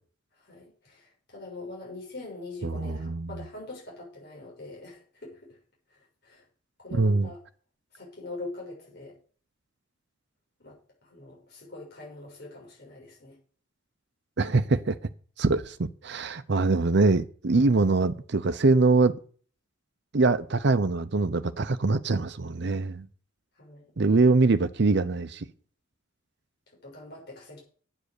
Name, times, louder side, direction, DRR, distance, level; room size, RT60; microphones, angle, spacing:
voice 1, 0.3-5.6 5.9-6.4 6.8-7.4 7.9-9.2 10.6-13.4 23.5-23.9 26.8-27.6, left 2 dB, 55° left, 6.8 m, -43 dB
voice 2, 2.6-3.3 6.9-7.3 14.4-15.0 15.4-19.2 20.1-23.1 24.0-25.5, right 3 dB, 55° right, 0.6 m, -23 dB
10.5 x 7.5 x 6.6 m
head